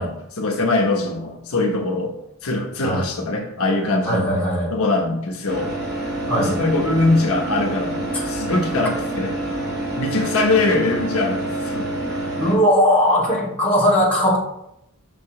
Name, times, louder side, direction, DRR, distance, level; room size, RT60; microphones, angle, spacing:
voice 1, 0.0-2.1 2.4-4.3 4.7-5.7 6.3-9.3 9.7-11.9, left 2 dB, 70° left, 0 dB, 1.2 m, -22 dB
voice 2, 4.0-4.7 6.3-6.5 8.1-8.2 12.4-14.4, equal, 5° left, -8 dB, 2.6 m, -18 dB
sound 1, 5.5-12.6, right 1 dB, 50° right, 1.6 m, -27 dB
6.8 x 6.7 x 3.2 m, 0.80 s
head